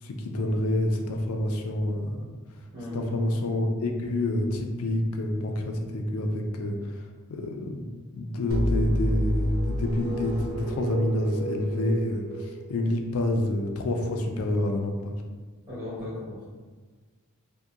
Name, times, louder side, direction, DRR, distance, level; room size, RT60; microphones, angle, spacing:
voice 1, 0.0-2.2 2.9-7.9 8.1-15.2, left 1 dB, 70° left, 3 dB, 0.4 m, -28 dB
voice 2, 2.7-3.2 15.7-16.5, left 1 dB, 45° right, -12 dB, 1.2 m, -36 dB
sound 1, 8.5-13.2, equal, 70° right, 0.7 m, -30 dB
2.7 x 2.2 x 2.3 m, 1.4 s
head